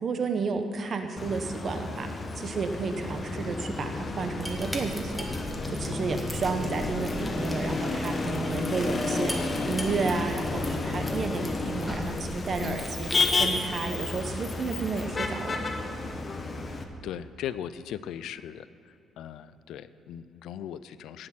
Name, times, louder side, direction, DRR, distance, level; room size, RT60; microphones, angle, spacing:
voice 1, 0.0-5.2 5.7-9.3 9.6-13.1 13.4-15.6, right 4 dB, 40° right, 6 dB, 0.9 m, -32 dB
Motor vehicle (road), 1.2-16.8, left 3 dB, 30° left, 0.9 m, -31 dB
sound 1, 4.4-13.4, equal, 5° left, 1.4 m, -39 dB
voice 2, 17.0-18.7 19.2-21.3, left 10 dB, 80° left, 14 dB, 0.4 m, -38 dB
18.0 x 6.3 x 5.9 m, 2.6 s
cardioid pair, 135°, 0 cm